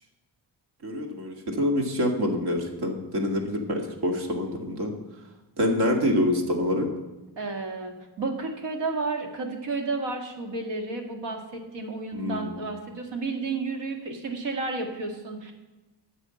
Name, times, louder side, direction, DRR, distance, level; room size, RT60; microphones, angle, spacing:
voice 1, 0.8-4.9 5.6-6.9 12.1-12.5, left 1 dB, 65° right, 2 dB, 2.1 m, -26 dB
voice 2, 7.4-15.5, right 3 dB, 80° right, 3 dB, 2.1 m, -32 dB
9.9 x 6.8 x 7.7 m, 1.1 s
cardioid pair, 110°, 42 cm